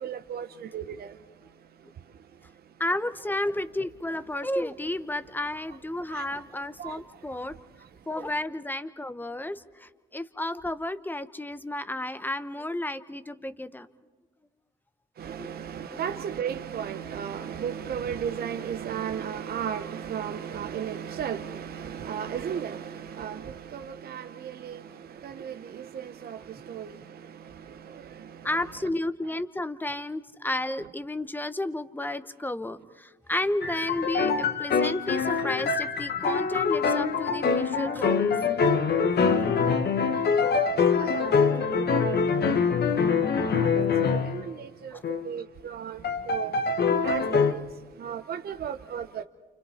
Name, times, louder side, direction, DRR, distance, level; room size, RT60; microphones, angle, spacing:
voice 1, 0.0-1.1 6.1-6.2 6.8-6.9 15.2-24.8 25.2-26.4 26.7-26.9 37.8-38.0 41.0-41.3 41.7-42.5 43.5-44.7 45.2-46.0 46.3-46.5 47.0-47.6 48.0-49.2, right 8 dB, 50° right, 0.8 m, -35 dB
voice 2, 2.8-7.5 8.1-13.9 15.4-15.5 15.9-16.0 28.4-38.3 38.9-39.5 44.9-45.0, left 1 dB, 10° left, 0.9 m, -32 dB
sound 1, 33.6-44.4 45.0-45.3 46.0-47.5, left 5 dB, 55° left, 1.2 m, -24 dB
29.0 x 28.5 x 4.3 m
cardioid pair, 90°, 20 cm